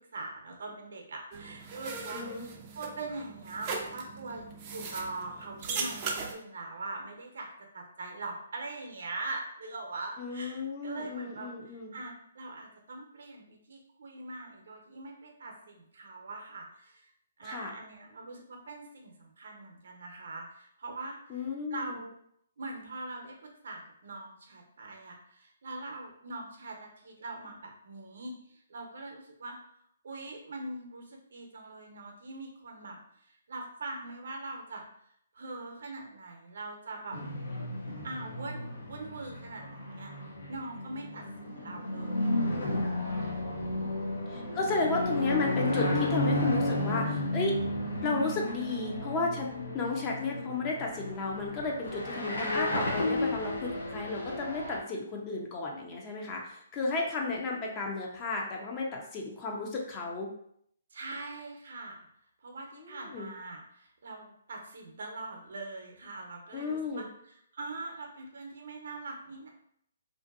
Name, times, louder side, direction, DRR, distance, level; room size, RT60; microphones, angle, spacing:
voice 1, 0.1-2.5 2.7-7.5 7.7-17.1 17.4-21.4 21.7-22.1 22.6-29.6 30.0-34.8 35.3-37.2 38.0-40.1 40.5-42.4 43.7-44.3 60.9-62.1 62.4-67.1 67.5-69.5, right 2 dB, 70° right, 2 dB, 0.6 m, -42 dB
sound 1, 1.3-6.3, right 4 dB, 30° right, 0.4 m, -38 dB
voice 2, 2.1-2.5 10.2-11.9 17.4-17.7 21.3-22.0 44.3-47.5 48.0-49.5 49.7-60.3 62.7-63.3 66.5-67.0, left 3 dB, 25° left, -1 dB, 0.5 m, -33 dB
sound 2, 37.1-54.8, left 1 dB, 75° left, 0.6 m, -33 dB
2.5 x 2.5 x 2.4 m, 0.69 s
hypercardioid pair, 145°, 0 cm